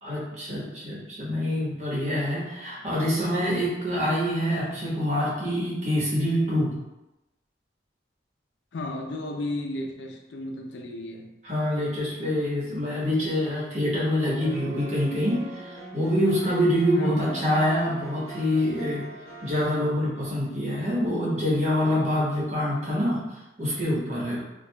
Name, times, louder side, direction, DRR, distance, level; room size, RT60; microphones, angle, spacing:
voice 1, 0.0-6.7 11.4-19.0 19.4-23.2 23.6-24.4, equal, 40° right, -7 dB, 1.1 m, -26 dB
voice 2, 8.7-11.3 16.9-17.4, left 1 dB, 75° left, 3 dB, 0.4 m, -33 dB
sound 1, 14.4-19.7, right 1 dB, 15° left, 1.0 m, -42 dB
4.5 x 2.4 x 2.2 m, 0.98 s
head